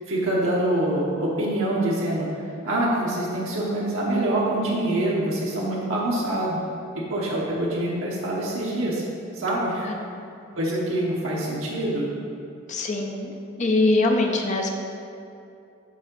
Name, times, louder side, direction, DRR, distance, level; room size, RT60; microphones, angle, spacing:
voice 1, 0.1-2.3 2.6-6.6 7.1-9.0 9.3-9.9 10.6-12.1, right 1 dB, 75° right, -5 dB, 1.0 m, -25 dB
voice 2, 9.9-10.2 12.7-13.3 13.6-14.7, left 2 dB, 35° left, 2 dB, 0.5 m, -23 dB
6.3 x 3.7 x 5.9 m, 2.6 s
head